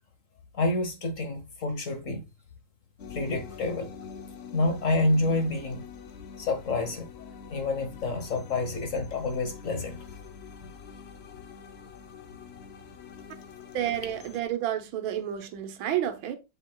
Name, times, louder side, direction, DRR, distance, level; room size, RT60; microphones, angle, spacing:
voice 1, 0.5-2.2 3.1-3.9 4.5-5.8 6.4-10.0, left 2 dB, 45° left, 1.3 m, -28 dB
sound 1, 3.0-14.4, left 6 dB, 85° left, 0.5 m, -45 dB
voice 2, 13.7-16.4, right 11 dB, 80° right, 1.7 m, -30 dB
8.0 x 5.2 x 2.3 m
omnidirectional pair, 2.1 m